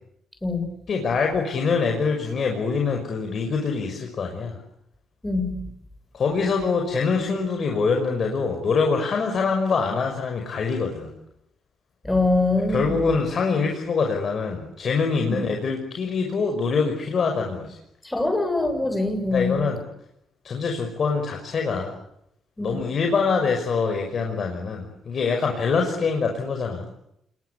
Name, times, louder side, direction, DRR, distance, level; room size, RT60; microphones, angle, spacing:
voice 1, 0.9-4.6 6.1-11.1 12.7-17.8 19.3-19.8 20.4-21.9 22.6-26.9, left 5 dB, 55° left, 5.9 m, -24 dB
voice 2, 12.1-13.0 15.3-15.4 18.1-19.6 22.6-22.7, left 2 dB, 10° left, 7.2 m, -23 dB
27.5 x 23.0 x 8.6 m
cardioid pair, 70°, 0 cm